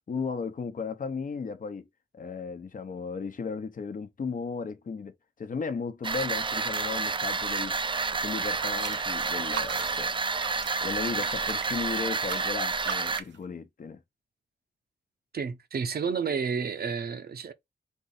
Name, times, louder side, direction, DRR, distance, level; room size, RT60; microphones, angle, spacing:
voice 1, 0.1-1.9 2.1-5.1 5.4-7.7 8.2-10.1 10.8-14.0, left 5 dB, 45° left, 0.8 m, -35 dB
sound 1, 6.0-13.2, right 4 dB, 25° right, 0.5 m, -30 dB
sound 2, 8.3-13.4, right 8 dB, 85° right, 0.8 m, -40 dB
voice 2, 15.3-17.5, right 6 dB, 60° right, 0.8 m, -31 dB
4.5 x 2.7 x 4.0 m
cardioid pair, 75°, 18 cm